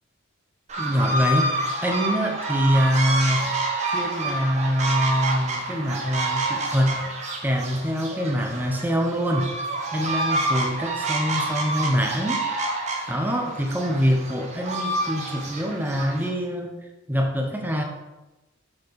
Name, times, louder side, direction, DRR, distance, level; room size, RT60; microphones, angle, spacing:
sound 1, 0.7-16.3, right 2 dB, 30° right, 1.4 m, -28 dB
voice 1, 0.8-1.5 1.8-3.6 3.9-7.0 7.4-9.5 9.9-12.7 13.1-16.8 17.1-17.8, equal, 10° right, 3 dB, 0.9 m, -24 dB
7.4 x 6.8 x 4.7 m, 1.0 s
head